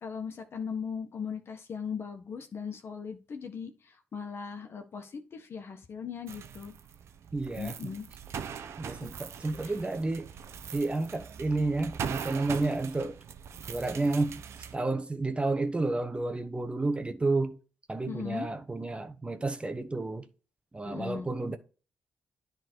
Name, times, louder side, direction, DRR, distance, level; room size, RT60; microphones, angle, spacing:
voice 1, 0.0-6.7 7.6-8.0 9.0-9.1 9.6-9.7 18.1-18.5 20.8-21.3, left 6 dB, 60° left, 1.5 m, -38 dB
sound 1, 6.3-14.7, right 7 dB, 70° right, 0.8 m, -41 dB
voice 2, 7.3-7.7 8.8-10.3 10.7-13.2 13.7-14.4 14.7-17.6 17.9-20.3 20.7-21.6, right 2 dB, 25° right, 1.1 m, -31 dB
10.0 x 4.0 x 4.6 m
supercardioid pair, 60°, 5 cm